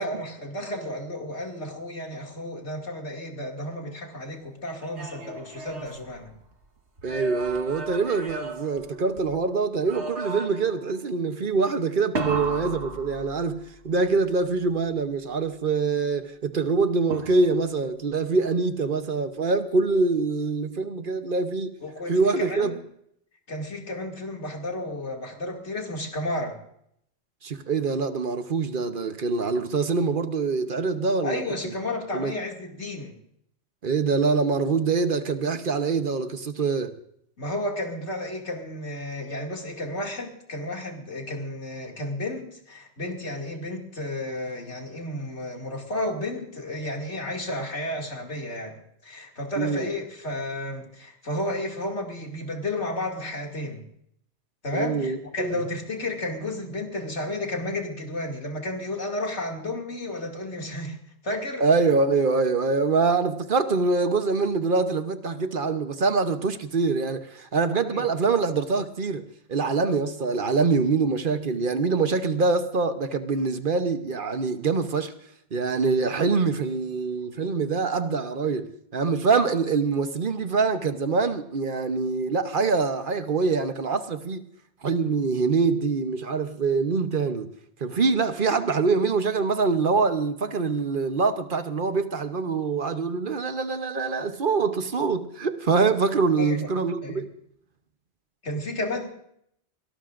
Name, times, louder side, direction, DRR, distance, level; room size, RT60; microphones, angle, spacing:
voice 1, 0.0-6.3 21.8-22.8 23.5-26.6 31.2-33.2 37.4-53.8 54.6-61.0 61.2-61.7 67.9-68.1 96.4-96.7 97.0-97.2 98.4-99.1, left 1 dB, 90° left, 2.8 m, -32 dB
sound 1, 4.6-6.5 7.0-9.4 9.9-10.8 12.2-13.8 17.1-17.8, right 3 dB, 75° right, 2.0 m, -35 dB
voice 2, 7.0-21.8 22.1-22.7 27.4-31.7 32.1-32.3 33.8-37.0 49.6-49.9 54.7-55.6 61.6-75.1 75.5-84.5 84.8-87.5 87.8-97.3, right 4 dB, 50° right, 1.1 m, -24 dB
23.0 x 18.5 x 2.5 m
omnidirectional pair, 1.1 m